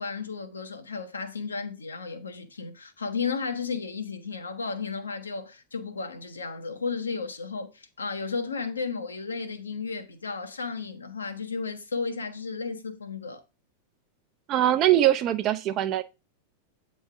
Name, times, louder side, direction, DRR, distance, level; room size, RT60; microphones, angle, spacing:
voice 1, 0.0-13.4, left 4 dB, 75° left, 0.8 m, -33 dB
voice 2, 14.5-16.0, right 12 dB, 35° right, 0.5 m, -22 dB
8.0 x 3.2 x 4.6 m
figure-of-eight pair, 90°, 0 cm